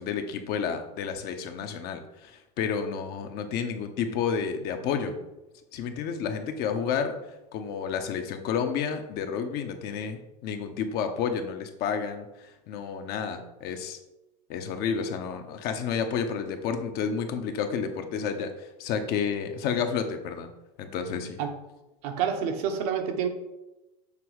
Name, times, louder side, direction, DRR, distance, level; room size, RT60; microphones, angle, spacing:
voice 1, 0.0-5.2 5.7-7.2 7.5-14.0 14.5-20.5 20.8-21.4, left 6 dB, 50° left, 6 dB, 0.9 m, -30 dB
voice 2, 22.0-23.3, right 7 dB, 60° right, 4 dB, 1.1 m, -28 dB
6.8 x 3.1 x 4.7 m, 0.96 s
hypercardioid pair, 95°, 21 cm